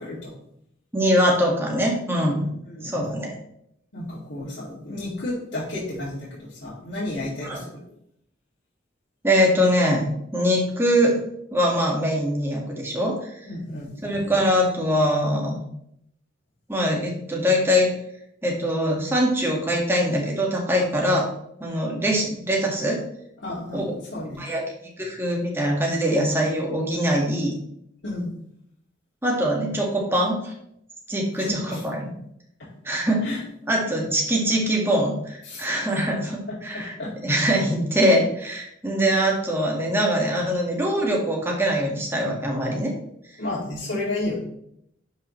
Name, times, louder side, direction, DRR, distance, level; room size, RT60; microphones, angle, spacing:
voice 1, 0.9-2.5 2.8-3.3 7.4-7.6 9.2-11.2 11.5-13.2 14.0-15.6 16.7-17.9 18.4-21.3 21.6-23.0 23.7-23.9 24.4-24.6 25.0-27.5 29.2-30.5 31.1-32.1 32.8-33.3 33.7-36.9 37.2-42.9, equal, 15° right, -1 dB, 1.8 m, -23 dB
voice 2, 2.5-2.9 3.9-7.8 13.4-13.9 23.4-24.5 28.0-28.3 31.4-31.8 32.6-32.7 33.2-33.4 34.0-34.1 35.4-35.6 36.5-37.1 43.4-44.4, left 2 dB, 75° left, -9 dB, 2.6 m, -32 dB
11.0 x 5.6 x 3.2 m, 0.73 s
head